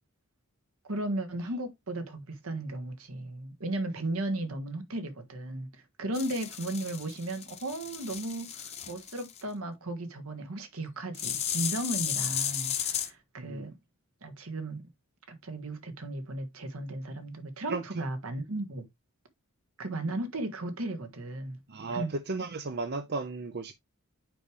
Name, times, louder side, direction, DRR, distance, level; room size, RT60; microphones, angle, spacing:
voice 1, 0.9-5.7 6.0-13.7 14.2-14.8 15.3-18.8 19.8-21.6 21.9-22.1, right 1 dB, 70° right, 1.4 m, -35 dB
sound 1, 6.1-9.4 11.1-13.1, left 9 dB, 30° left, 0.9 m, -34 dB
voice 2, 13.4-13.7 17.7-18.0 21.7-23.7, right 3 dB, 50° right, 0.6 m, -35 dB
7.7 x 4.9 x 3.3 m
head